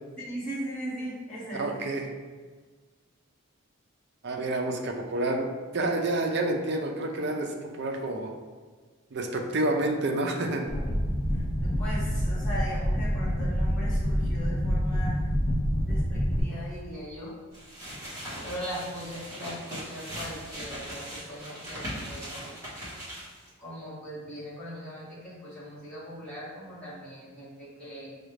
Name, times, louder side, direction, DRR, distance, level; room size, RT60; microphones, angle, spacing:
voice 1, 0.2-2.0 11.3-15.3 15.9-17.4 18.4-22.7 23.6-28.1, equal, 5° left, -11 dB, 1.3 m, -39 dB
voice 2, 1.5-2.1 4.2-8.3 9.1-10.7, right 2 dB, 55° right, 2 dB, 0.5 m, -29 dB
sound 1, 10.7-16.4, equal, 25° left, 0.6 m, -27 dB
sound 2, 17.5-23.5, equal, 15° right, 1.4 m, -39 dB
6.2 x 2.4 x 3.2 m, 1.4 s
head